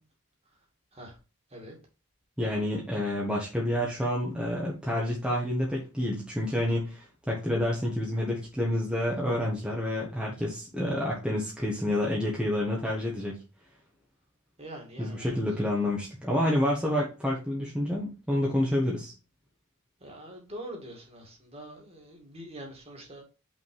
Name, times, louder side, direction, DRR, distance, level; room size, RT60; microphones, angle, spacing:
voice 1, 2.4-13.4 15.0-19.1, left 1 dB, 5° right, 1.3 m, -29 dB
voice 2, 14.6-15.6 20.0-23.2, right 1 dB, 25° right, 2.2 m, -44 dB
5.7 x 5.1 x 5.5 m
head